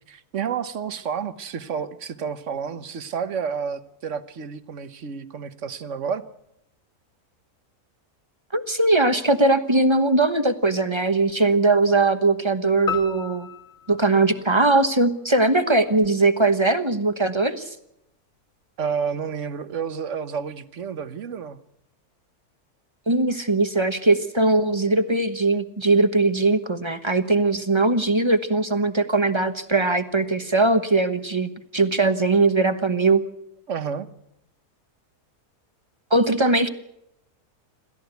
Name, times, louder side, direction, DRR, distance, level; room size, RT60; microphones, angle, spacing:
voice 1, 0.1-6.2 18.8-21.6 33.7-34.1, right 6 dB, 55° right, 12 dB, 1.4 m, -30 dB
voice 2, 8.5-13.5 13.9-17.7 23.1-33.2 36.1-36.7, right 2 dB, 20° right, 9 dB, 1.1 m, -20 dB
sound 1, 12.9-15.3, left 7 dB, 35° left, 1.5 m, -34 dB
27.5 x 14.0 x 8.1 m, 0.83 s
omnidirectional pair, 1.6 m